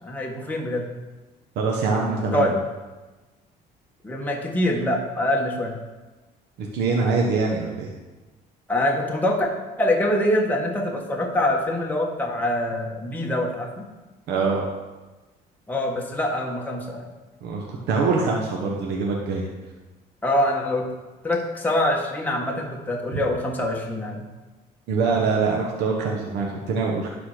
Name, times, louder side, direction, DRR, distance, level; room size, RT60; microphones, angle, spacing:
voice 1, 0.0-0.9 2.3-2.5 4.0-5.8 8.7-9.5 9.8-13.8 15.7-17.1 20.2-20.9 21.2-24.2, left 1 dB, 10° left, -1 dB, 1.3 m, -24 dB
voice 2, 1.6-2.5 6.6-7.9 14.3-14.6 17.4-19.5 24.9-27.1, right 4 dB, 85° right, -1 dB, 1.2 m, -24 dB
12.0 x 4.2 x 5.0 m, 1.2 s
cardioid pair, 110°, 17 cm